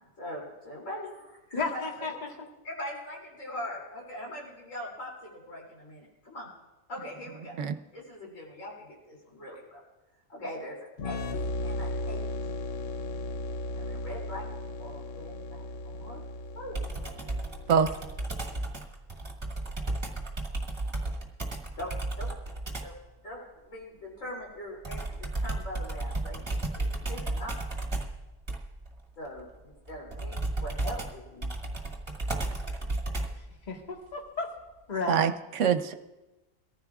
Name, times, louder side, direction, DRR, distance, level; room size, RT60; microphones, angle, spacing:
voice 1, 0.0-2.0 2.6-6.5 6.9-7.6 7.9-9.8 10.3-10.8 11.0-11.3 11.6-12.2 13.8-14.4 14.8-16.2 16.5-16.8 21.8-21.9 22.2-22.3 22.8-22.9 23.2-27.5 29.2-31.5, left 1 dB, 70° left, -3 dB, 3.3 m, -41 dB
voice 2, 1.5-2.5 33.7-34.5 34.9-35.2, left 4 dB, 35° left, 0 dB, 1.6 m, -33 dB
sound 1, 11.0-18.5, left 1 dB, 55° left, 0.8 m, -36 dB
Computer keyboard, 16.7-23.0 24.8-33.5, right 2 dB, 20° right, 1.7 m, -34 dB
voice 3, 35.1-35.9, right 7 dB, 70° right, 8 dB, 1.1 m, -24 dB
23.0 x 14.5 x 2.4 m, 1.1 s
omnidirectional pair, 1.4 m